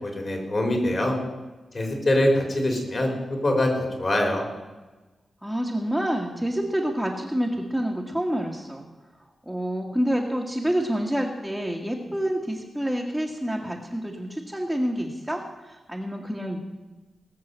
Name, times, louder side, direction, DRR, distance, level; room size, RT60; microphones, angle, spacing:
voice 1, 0.0-1.2 1.7-4.5, left 1 dB, 40° left, 2 dB, 3.7 m, -24 dB
voice 2, 5.4-8.8 9.4-16.6, equal, 5° right, -2 dB, 1.7 m, -28 dB
20.0 x 6.9 x 8.0 m, 1.2 s
wide cardioid pair, 115°, 0 cm